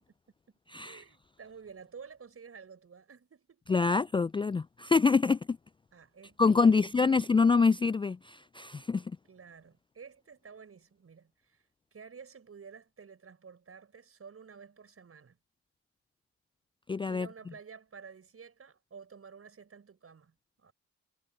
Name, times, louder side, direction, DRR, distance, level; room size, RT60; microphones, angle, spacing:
voice 1, 0.8-3.6 5.9-7.3 9.3-15.4 17.1-20.7, right 6 dB, 40° right, 6.7 m, -51 dB
voice 2, 3.7-5.6 6.4-9.1 16.9-17.3, left 4 dB, 15° left, 0.4 m, -25 dB
hypercardioid pair, 40°, 34 cm